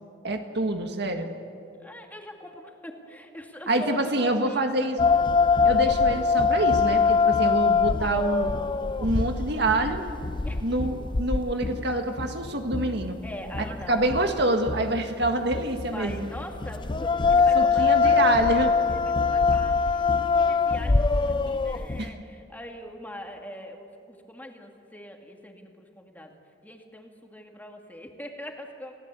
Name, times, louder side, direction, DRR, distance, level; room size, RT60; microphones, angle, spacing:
voice 1, 0.2-1.3 3.7-5.1 5.6-8.5 9.0-10.1 10.6-13.2 13.9-16.3 17.6-18.7 22.0-22.1, right 1 dB, 65° right, 5 dB, 1.8 m, -26 dB
voice 2, 1.8-4.9 10.4-10.6 13.2-14.1 15.8-18.5 18.9-26.4 26.6-28.9, left 1 dB, 10° left, 2 dB, 2.3 m, -42 dB
sound 1, 5.0-22.1, left 5 dB, 25° left, 0.5 m, -24 dB
29.5 x 17.0 x 8.3 m, 2.6 s
head